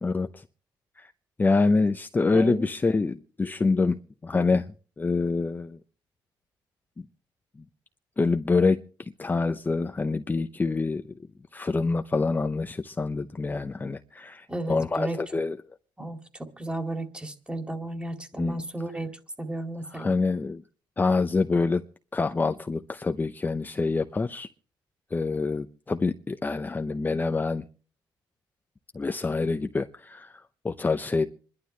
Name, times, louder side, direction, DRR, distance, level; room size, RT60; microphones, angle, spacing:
voice 1, 0.0-0.4 1.0-1.1 1.4-4.7 5.0-5.8 7.0-7.1 7.6-7.7 8.2-11.0 11.5-15.6 18.3-18.6 19.9-20.6 21.0-21.8 22.1-24.5 25.1-27.6 28.9-31.3, left 3 dB, 20° left, 0.7 m, -26 dB
voice 2, 2.3-2.7 14.5-15.2 16.0-19.1 19.4-20.2, right 1 dB, 10° right, 2.3 m, -33 dB
27.0 x 11.5 x 3.2 m
cardioid pair, 95°, 8 cm